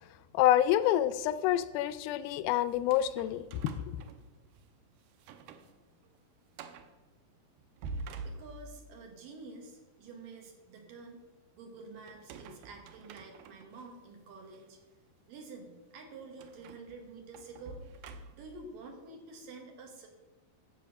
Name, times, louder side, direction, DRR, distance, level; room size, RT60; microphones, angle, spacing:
voice 1, 0.3-3.5, left 12 dB, 85° left, 15 dB, 2.4 m, -27 dB
sound 1, 2.7-4.7 5.1-5.7 6.0-6.1 6.5-7.0 7.6-8.9 12.1-13.8 14.5-14.6 16.4-18.6, right 3 dB, 90° right, 2.6 m, -47 dB
voice 2, 8.2-11.2 11.6-14.8 15.3-17.8 18.3-20.1, right 3 dB, 70° right, 2 dB, 3.2 m, -49 dB
13.5 x 7.6 x 5.5 m, 1.2 s
omnidirectional pair, 4.3 m